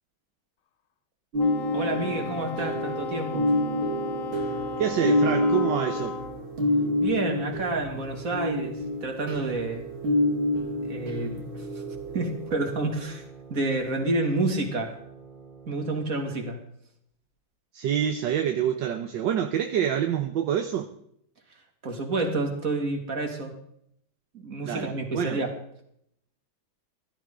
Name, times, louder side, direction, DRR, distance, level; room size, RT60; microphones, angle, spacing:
sound 1, 1.3-13.0, left 1 dB, 90° right, 3.0 m, -28 dB
Wind instrument woodwind instrument, 1.4-6.4, left 7 dB, 55° left, 0.9 m, -36 dB
sound 2, 1.7-16.3, right 5 dB, 20° right, 4.1 m, -46 dB
voice 1, 1.7-3.5 7.0-9.9 10.8-11.7 12.1-13.2 13.5-15.0 15.7-16.6 21.8-23.5 24.3-25.5, right 2 dB, 45° right, 2.8 m, -29 dB
voice 2, 4.8-6.2 17.7-20.9 24.6-25.4, right 9 dB, 70° right, 1.5 m, -27 dB
17.0 x 13.0 x 3.8 m
omnidirectional pair, 2.2 m